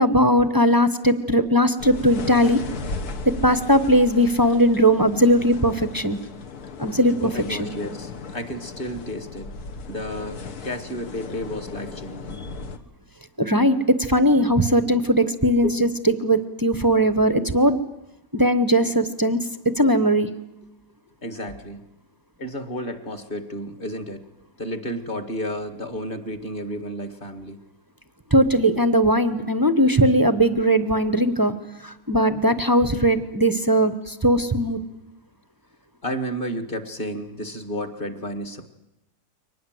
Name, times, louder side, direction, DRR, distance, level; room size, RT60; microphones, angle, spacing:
voice 1, 0.0-2.6 3.3-6.2 6.8-7.2 7.5-7.7 13.4-17.8 18.3-19.4 19.8-20.3 28.3-31.5 31.8-34.8, equal, 20° right, 12 dB, 0.7 m, -19 dB
sound 1, 1.8-12.8, left 4 dB, 65° left, 1.9 m, -36 dB
voice 2, 7.2-9.5 9.9-12.4 15.6-15.8 21.2-21.8 22.4-24.2 24.6-27.6 36.0-38.7, equal, 30° left, 9 dB, 1.9 m, -32 dB
24.0 x 19.5 x 7.8 m, 0.90 s
omnidirectional pair, 1.8 m